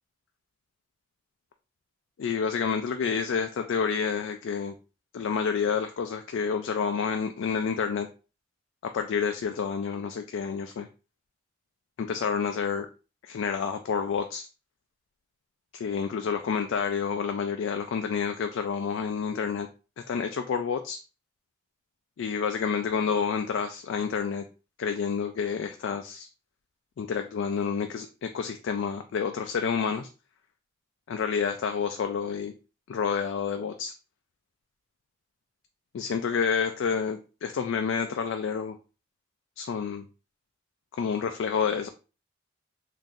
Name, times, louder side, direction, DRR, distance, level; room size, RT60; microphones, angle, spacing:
voice 1, 2.2-4.8 5.1-8.1 8.8-10.9 12.0-12.9 13.2-14.5 15.7-19.7 20.0-21.0 22.2-24.5 24.8-26.3 27.0-30.1 31.1-32.5 32.9-33.9 35.9-38.8 39.6-40.1 40.9-41.9, left 6 dB, 90° left, 6 dB, 0.3 m, -29 dB
3.7 x 2.6 x 2.5 m, 0.33 s
head